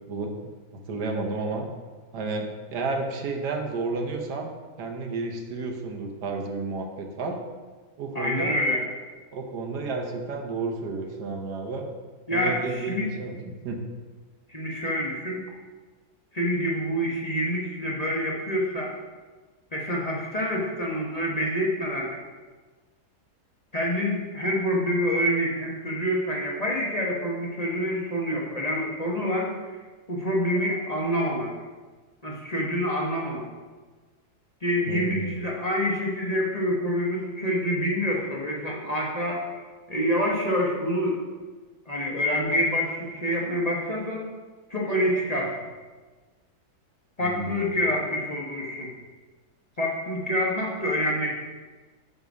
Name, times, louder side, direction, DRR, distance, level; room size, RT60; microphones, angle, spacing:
voice 1, 0.1-0.5 0.9-1.7 2.1-4.5 4.8-7.4 8.0-8.6 9.3-11.9 12.3-13.8 34.9-35.4 47.2-47.8, right 3 dB, 90° right, 3 dB, 1.5 m, -31 dB
voice 2, 8.1-8.8 12.3-13.1 14.5-15.4 16.3-18.9 19.7-22.2 23.7-29.8 30.1-31.5 32.2-33.5 34.6-41.2 41.9-44.3 44.7-45.5 47.2-48.9 49.8-51.4, equal, 30° left, -3 dB, 1.0 m, -27 dB
6.4 x 6.0 x 5.2 m, 1.4 s
omnidirectional pair, 1.7 m